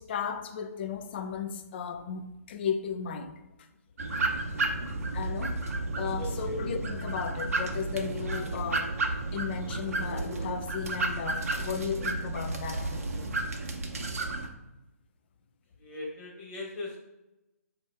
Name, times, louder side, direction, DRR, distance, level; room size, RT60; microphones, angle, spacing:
voice 1, 0.0-3.4 5.1-5.6 6.0-9.0 9.3-13.3, left 6 dB, 40° left, 0.5 m, -35 dB
sound 1, 4.0-14.5, right 2 dB, 65° right, 0.7 m, -32 dB
sound 2, 4.6-10.5, right 4 dB, 15° right, 0.4 m, -47 dB
voice 2, 6.1-6.5 15.8-17.0, left 2 dB, 20° left, 1.3 m, -40 dB
5.3 x 2.9 x 3.4 m
figure-of-eight pair, 135°, 9 cm